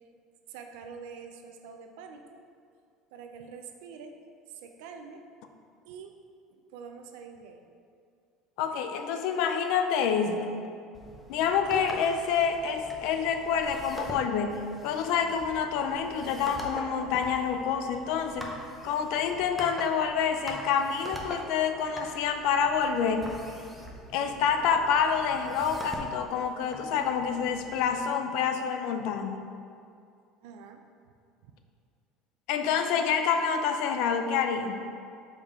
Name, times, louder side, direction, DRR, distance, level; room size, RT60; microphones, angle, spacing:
voice 1, 0.5-2.4 3.1-4.1 4.5-5.2 5.9-6.2 6.5-7.6 30.4-30.8 31.4-31.5, right 6 dB, 75° right, 5 dB, 0.5 m, -45 dB
voice 2, 8.6-10.7 11.3-18.5 18.8-23.3 24.1-29.5 32.5-34.9, left 6 dB, 60° left, 7 dB, 0.5 m, -27 dB
sound 1, 10.9-27.9, equal, ahead, 0.6 m, -44 dB
6.4 x 5.0 x 3.6 m, 2.4 s
cardioid pair, 180°, 0 cm